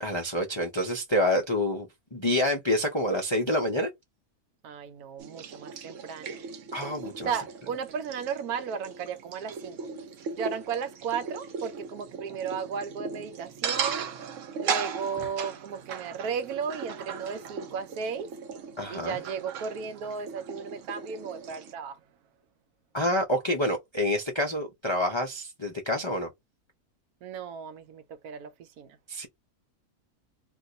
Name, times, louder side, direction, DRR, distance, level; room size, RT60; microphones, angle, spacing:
voice 1, 0.0-3.9 6.7-7.3 18.8-19.2 22.9-26.3 29.1-29.3, left 1 dB, 50° left, 0.3 m, -27 dB
voice 2, 4.6-6.4 7.2-9.9 10.3-14.1 14.6-18.3 18.9-22.0 27.2-29.0, right 6 dB, 80° right, 1.2 m, -35 dB
sound 1, 5.2-21.7, right 6 dB, 65° right, 1.0 m, -37 dB
2.6 x 2.4 x 3.8 m
omnidirectional pair, 1.6 m